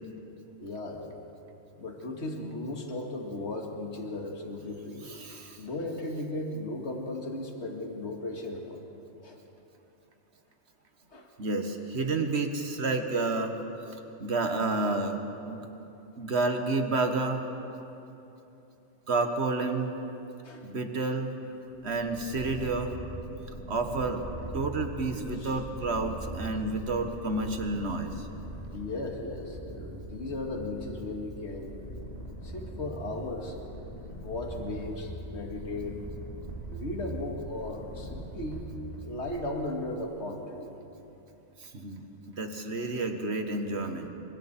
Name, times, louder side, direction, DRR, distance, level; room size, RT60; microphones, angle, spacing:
voice 1, 0.6-1.1 1.8-5.1 5.6-8.8 9.2-9.4 11.1-11.3 20.4-20.6 25.4-25.6 28.7-31.8 32.4-33.6 34.1-36.0 36.7-38.7 39.0-40.7, left 2 dB, 65° left, 1 dB, 2.3 m, -36 dB
voice 2, 5.0-5.6 11.4-13.6 13.9-15.2 15.5-15.7 16.2-17.4 19.1-19.9 20.6-21.3 21.8-23.0 23.7-24.2 24.5-28.3 41.6-44.1, right 3 dB, 60° right, 5 dB, 1.8 m, -30 dB
Purr, 21.7-39.4, right 1 dB, 45° left, 4.5 m, -41 dB
28.0 x 24.0 x 4.4 m, 2.9 s
omnidirectional pair, 1.3 m